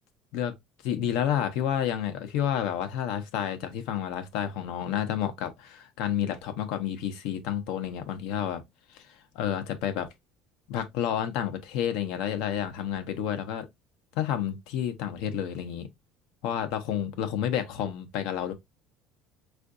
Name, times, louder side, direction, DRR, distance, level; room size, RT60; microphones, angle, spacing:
voice 1, 0.8-8.6 8.9-9.0 9.3-10.1 10.7-13.7 14.2-15.9 16.4-18.5, left 10 dB, 70° left, 0.7 m, -30 dB
4.5 x 2.5 x 2.4 m
cardioid pair, 170°, 0 cm